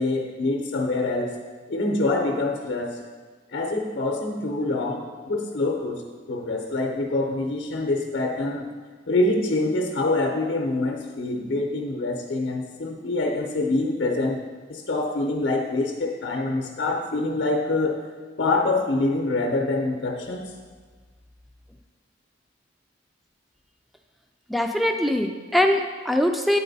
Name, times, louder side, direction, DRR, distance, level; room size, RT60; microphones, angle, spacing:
voice 1, 0.0-1.4 1.7-3.0 3.5-6.0 6.3-8.7 9.1-14.4 14.7-18.0 18.4-20.4, left 2 dB, 60° left, 2 dB, 0.6 m, -25 dB
voice 2, 24.5-26.6, left 1 dB, ahead, 4 dB, 0.3 m, -22 dB
8.5 x 4.2 x 4.0 m, 1.5 s
head